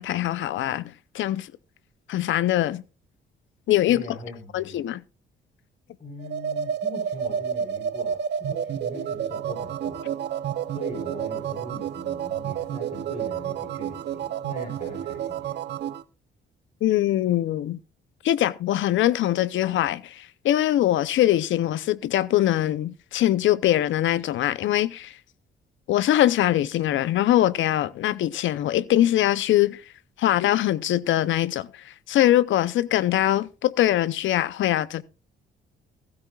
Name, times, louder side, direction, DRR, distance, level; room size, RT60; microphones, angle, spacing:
voice 1, 0.0-1.5 2.1-2.8 3.7-4.2 4.5-5.0 16.8-17.8 18.2-25.2 25.9-29.8 30.2-35.0, left 13 dB, 75° left, 0.7 m, -22 dB
voice 2, 3.9-4.7 6.0-10.1 10.7-15.6, left 1 dB, 35° left, 4.4 m, -40 dB
sound 1, 6.2-16.0, right 8 dB, 60° right, 0.7 m, -30 dB
15.5 x 14.5 x 2.4 m
cardioid pair, 90°, 20 cm